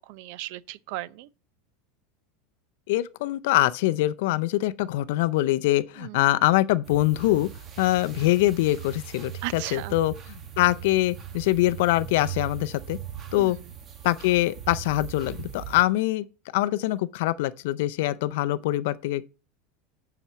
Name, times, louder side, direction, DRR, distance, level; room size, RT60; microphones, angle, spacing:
voice 1, 0.1-1.3 6.0-6.2 9.4-10.0 13.3-13.5, right 17 dB, 55° right, 0.6 m, -36 dB
voice 2, 2.9-7.5 7.8-10.1 10.6-13.0 13.3-13.6 14.0-16.2 16.5-19.2, left 16 dB, 65° left, 0.5 m, -24 dB
sound 1, 6.8-15.8, right 10 dB, 25° right, 1.2 m, -40 dB
7.3 x 5.9 x 6.8 m
supercardioid pair, 155°, 0 cm